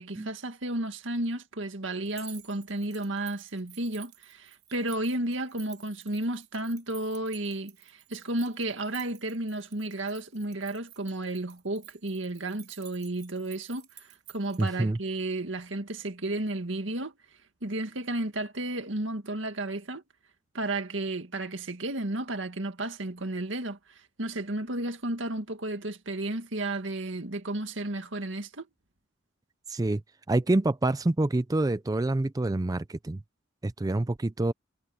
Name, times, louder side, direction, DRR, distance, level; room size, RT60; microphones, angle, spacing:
voice 1, 0.0-17.1 17.6-20.0 20.5-23.8 24.2-28.7, right 2 dB, 80° right, 2.1 m, -33 dB
sound 1, 2.1-14.7, right 13 dB, 55° right, 4.0 m, -52 dB
voice 2, 14.6-15.0 29.7-30.0 30.3-33.2 33.6-34.5, right 2 dB, 20° right, 0.4 m, -27 dB
head